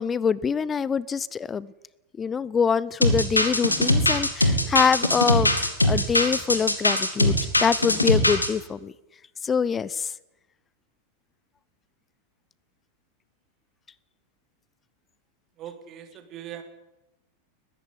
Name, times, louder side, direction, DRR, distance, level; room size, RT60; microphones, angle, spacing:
voice 1, 0.0-1.7 2.2-8.9 9.4-10.1, left 6 dB, 20° left, 22 dB, 0.7 m, -25 dB
sound 1, 3.0-8.5, left 1 dB, 85° left, 2.5 m, -21 dB
voice 2, 15.6-16.6, right 10 dB, 35° right, 8 dB, 3.5 m, -40 dB
20.5 x 15.0 x 9.8 m, 0.98 s
figure-of-eight pair, 90°, 0 cm